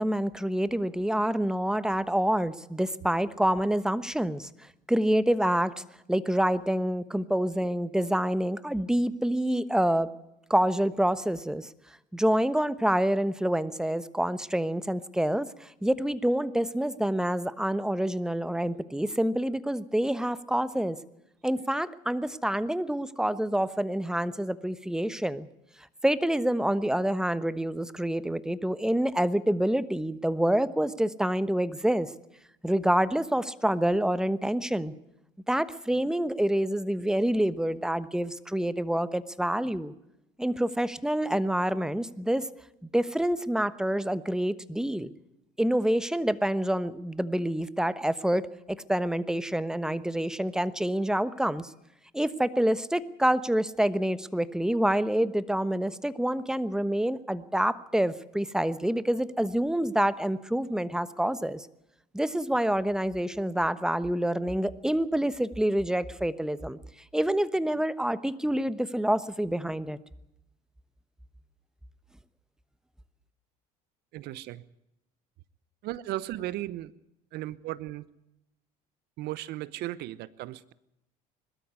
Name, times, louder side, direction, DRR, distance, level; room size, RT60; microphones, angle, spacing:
voice 1, 0.0-4.5 4.9-5.8 6.1-10.1 10.5-11.7 12.1-21.0 21.4-25.5 26.0-32.1 32.6-34.9 35.5-39.9 40.4-42.5 42.8-45.1 45.6-48.4 48.7-51.7 52.1-61.7 62.1-66.8 67.1-70.0, right 1 dB, 5° right, 1.1 m, -27 dB
voice 2, 74.1-74.6 75.8-76.9 77.3-78.1 79.2-80.7, right 15 dB, 65° right, 0.9 m, -36 dB
21.0 x 13.0 x 9.6 m
hypercardioid pair, 75°, 18 cm